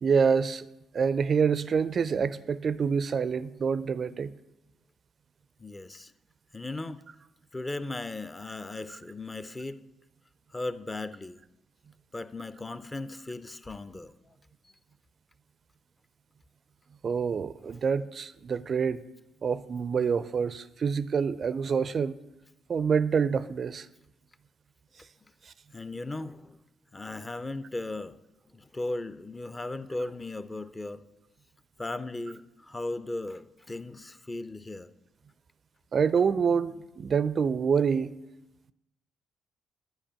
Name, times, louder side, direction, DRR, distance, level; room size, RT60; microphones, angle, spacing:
voice 1, 0.0-0.6 0.9-4.3 8.9-9.0 17.0-19.0 19.4-22.2 22.7-23.9 25.5-25.6 35.9-38.1, right 6 dB, 45° right, 0.4 m, -26 dB
voice 2, 5.6-6.1 6.5-7.0 7.5-9.8 10.5-11.4 12.1-14.4 17.6-18.1 25.7-26.6 26.9-28.2 28.5-31.1 31.8-34.9, left 2 dB, 25° left, 0.6 m, -37 dB
11.0 x 4.9 x 6.9 m
figure-of-eight pair, 40°, 0 cm